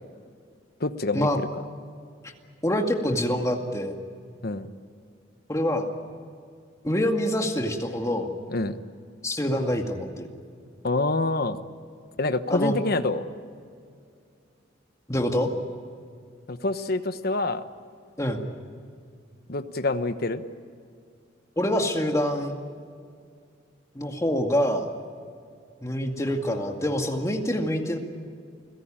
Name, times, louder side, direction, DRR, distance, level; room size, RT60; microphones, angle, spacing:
voice 1, 0.8-1.5 4.4-4.7 8.5-8.8 10.8-11.6 12.2-13.2 16.5-17.6 19.5-20.4, left 2 dB, 55° left, 10 dB, 1.1 m, -26 dB
voice 2, 2.6-4.0 5.5-5.9 6.8-8.3 9.2-10.3 12.5-12.7 15.1-15.5 18.2-18.5 21.6-22.6 23.9-24.9 25.8-28.0, equal, 15° left, 3 dB, 2.2 m, -26 dB
29.0 x 17.0 x 8.9 m, 2.3 s
head